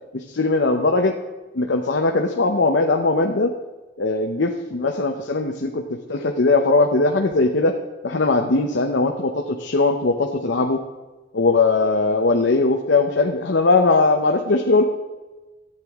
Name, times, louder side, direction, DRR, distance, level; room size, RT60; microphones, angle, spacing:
voice 1, 0.1-1.1 1.5-3.5 4.0-5.8 6.1-7.7 8.0-10.8 11.3-14.8, left 3 dB, 70° left, 3 dB, 0.8 m, -19 dB
13.5 x 9.0 x 3.6 m, 1.2 s
head